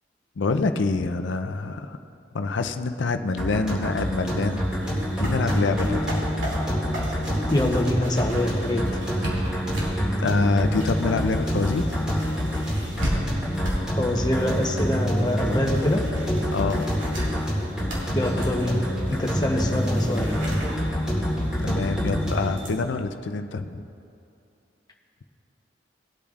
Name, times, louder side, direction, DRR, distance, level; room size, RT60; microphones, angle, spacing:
voice 1, 0.4-2.0 2.3-6.2 10.2-12.1 16.5-16.9 21.6-23.8, left 3 dB, 80° left, 8 dB, 0.5 m, -26 dB
sound 1, 3.4-22.6, equal, 5° right, 2.1 m, -26 dB
sound 2, 3.9-22.7, equal, 90° right, 2.7 m, -36 dB
voice 2, 7.5-9.0 13.9-16.0 18.1-18.8 19.1-20.3, left 1 dB, 20° left, 1 dB, 0.9 m, -25 dB
19.5 x 8.5 x 2.5 m, 2.6 s
head